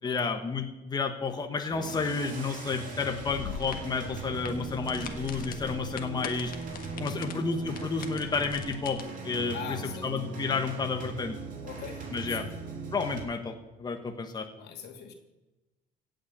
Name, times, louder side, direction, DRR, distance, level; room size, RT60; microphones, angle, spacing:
voice 1, 0.0-6.5 7.0-11.3 12.1-12.4 12.9-14.5, left 4 dB, 25° left, 5 dB, 1.3 m, -31 dB
sound 1, 1.7-13.2, right 3 dB, 50° right, 3.8 m, -39 dB
sound 2, 3.2-9.0, left 7 dB, 60° left, 1.6 m, -43 dB
voice 2, 9.5-10.1 11.6-12.5 14.6-15.1, left 8 dB, 75° left, 4 dB, 2.4 m, -41 dB
16.5 x 6.5 x 8.0 m, 1.0 s
cardioid pair, 110°, 17 cm